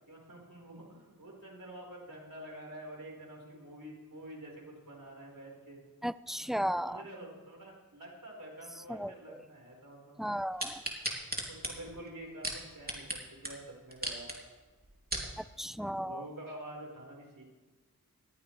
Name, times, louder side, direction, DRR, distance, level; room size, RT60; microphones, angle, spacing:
voice 1, 0.1-5.8 6.4-10.3 11.4-14.5 16.0-17.4, right 1 dB, 70° right, -2 dB, 4.6 m, -48 dB
voice 2, 6.0-7.0 8.9-9.1 10.2-10.8 15.6-16.2, equal, ahead, 15 dB, 0.3 m, -34 dB
sound 1, 10.6-13.2 13.4-13.5 13.9-14.4 14.8-15.3 15.9-16.0, right 1 dB, 25° right, 2.9 m, -36 dB
20.0 x 14.0 x 3.3 m, 1.3 s
wide cardioid pair, 55°, 35 cm